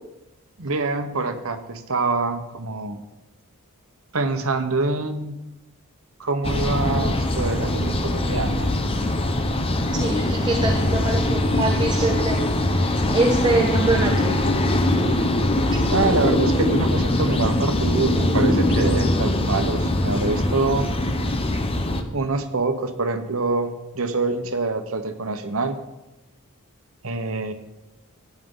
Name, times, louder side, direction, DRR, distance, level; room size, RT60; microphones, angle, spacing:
voice 1, 0.6-3.0 4.1-5.4 6.2-8.7 15.9-20.9 22.1-25.8 27.0-27.5, right 3 dB, 65° right, 8 dB, 1.1 m, -25 dB
sound 1, 6.4-22.0, left 1 dB, 25° left, 0.8 m, -22 dB
voice 2, 10.0-12.4 13.1-14.4 14.9-15.2 15.7-15.8, right 2 dB, 20° right, 0 dB, 1.1 m, -24 dB
15.0 x 9.3 x 3.9 m, 0.99 s
head